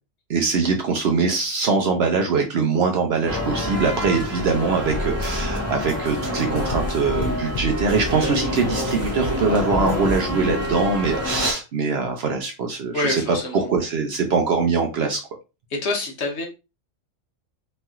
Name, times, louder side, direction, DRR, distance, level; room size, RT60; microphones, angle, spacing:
voice 1, 0.3-13.2 13.5-15.2, right 4 dB, 65° right, 3 dB, 0.7 m, -22 dB
sound 1, 3.3-11.5, left 1 dB, 20° right, 0.4 m, -27 dB
sound 2, 4.9-5.6 5.9-8.3 8.5-10.2, left 1 dB, 75° left, 0.3 m, -31 dB
voice 2, 12.9-13.7 15.7-16.5, left 2 dB, 60° left, 2 dB, 1.0 m, -26 dB
3.1 x 2.8 x 2.3 m, 0.27 s
omnidirectional pair, 1.4 m